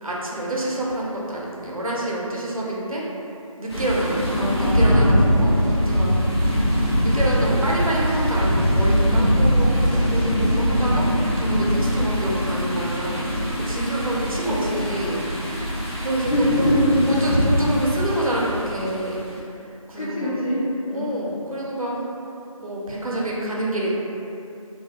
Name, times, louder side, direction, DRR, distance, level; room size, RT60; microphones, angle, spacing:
voice 1, 0.0-3.0 3.6-6.1 7.0-15.6 16.0-16.3 17.1-19.2 19.9-20.4 20.9-22.1 22.6-23.9, right 1 dB, 70° right, -4 dB, 0.6 m, -27 dB
sound 1, 3.7-19.0, equal, 45° left, 0.5 m, -22 dB
voice 2, 14.4-14.9 16.3-17.0 20.0-21.1, left 1 dB, 75° left, -8 dB, 0.8 m, -23 dB
2.3 x 2.0 x 2.7 m, 2.7 s
figure-of-eight pair, 170°, 18 cm